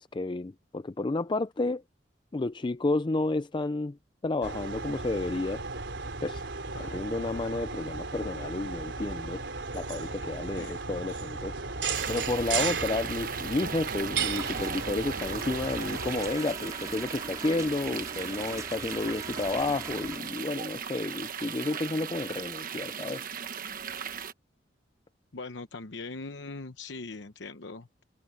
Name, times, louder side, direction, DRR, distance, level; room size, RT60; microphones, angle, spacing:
voice 1, 0.0-1.8 2.3-4.0 4.2-5.6 6.2-6.4 6.8-9.4 9.7-11.5 12.1-23.3, left 2 dB, 25° left, 0.5 m, -31 dB
sound 1, 4.4-16.3, right 4 dB, 85° right, 3.8 m, -35 dB
voice 2, 10.6-11.0 25.3-28.0, left 3 dB, 80° left, 0.9 m, -41 dB
sound 2, 11.9-24.3, right 7 dB, 50° right, 1.2 m, -38 dB
sound 3, 14.3-20.2, right 2 dB, 20° right, 4.4 m, -43 dB
head